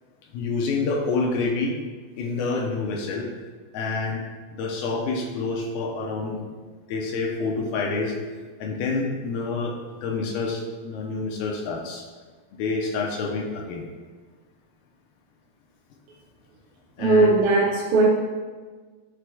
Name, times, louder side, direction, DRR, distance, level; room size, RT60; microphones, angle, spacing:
voice 1, 0.3-1.8 2.2-3.3 3.7-4.2 4.5-6.4 6.9-8.2 8.6-12.1 12.5-13.9 17.0-17.3, left 3 dB, 80° left, 0 dB, 2.5 m, -27 dB
voice 2, 17.0-18.1, right 2 dB, 80° right, -1 dB, 2.1 m, -18 dB
13.5 x 4.8 x 2.3 m, 1.4 s
omnidirectional pair, 4.7 m